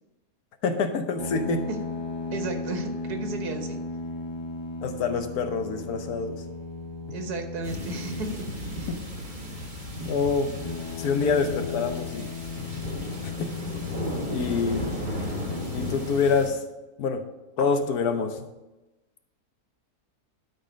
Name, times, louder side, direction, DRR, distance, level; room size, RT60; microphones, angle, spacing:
voice 1, 0.6-1.7 4.8-6.4 8.9-9.0 10.0-10.5 11.0-12.3 13.4-13.5 14.3-15.0 15.7-16.6 17.0-17.2 17.6-18.4, left 5 dB, 75° left, 7 dB, 1.3 m, -26 dB
sound 1, 1.2-8.5 10.5-14.7 15.3-15.7, left 3 dB, 20° left, 0.8 m, -35 dB
voice 2, 2.3-3.8 7.1-9.0, right 3 dB, 85° right, 5 dB, 1.7 m, -34 dB
sound 2, 7.6-16.5, left 1 dB, 30° right, 1.8 m, -35 dB
12.5 x 4.2 x 5.1 m, 1.0 s
omnidirectional pair, 1.6 m